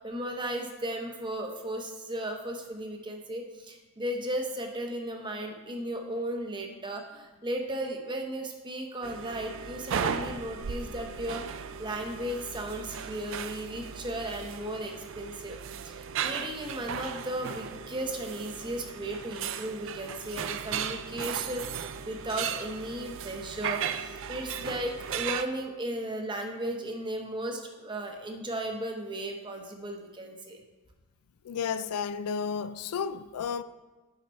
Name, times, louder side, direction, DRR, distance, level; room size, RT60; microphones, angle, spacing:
voice 1, 0.0-30.6, right 1 dB, 20° right, 0.8 m, -35 dB
sound 1, 9.0-25.4, right 7 dB, 60° right, 0.4 m, -36 dB
voice 2, 31.4-33.6, left 6 dB, 85° left, 0.4 m, -32 dB
8.4 x 5.7 x 4.3 m
head